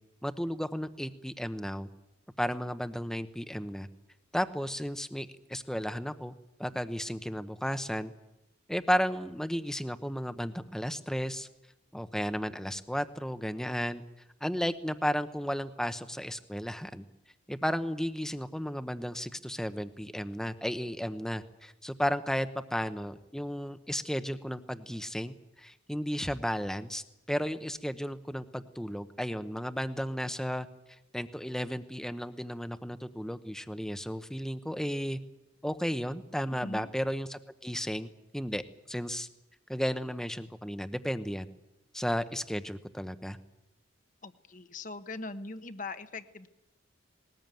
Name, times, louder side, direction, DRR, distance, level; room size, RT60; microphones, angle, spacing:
voice 1, 0.2-1.9 2.4-3.9 4.3-6.3 6.6-8.1 8.7-11.5 11.9-14.0 14.4-17.0 17.5-30.7 31.1-35.2 35.6-38.1 38.3-38.6 38.9-39.3 39.7-41.5 41.9-43.4, equal, 5° left, 10 dB, 0.9 m, -34 dB
voice 2, 36.5-36.9 44.2-46.5, left 3 dB, 40° left, 10 dB, 1.1 m, -41 dB
20.5 x 19.5 x 9.2 m, 0.94 s
head